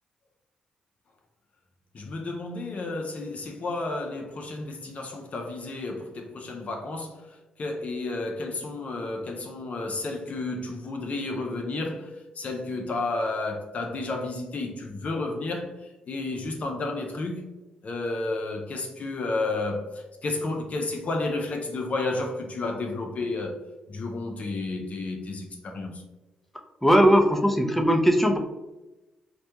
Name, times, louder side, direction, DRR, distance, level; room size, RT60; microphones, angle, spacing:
voice 1, 1.9-7.2 7.6-15.8 16.1-17.4 17.8-23.6 23.9-26.0, left 2 dB, 45° left, 0.4 m, -31 dB
voice 2, 26.8-28.4, equal, 5° left, 0.6 m, -19 dB
4.2 x 2.2 x 2.8 m
hypercardioid pair, 40°, 3 cm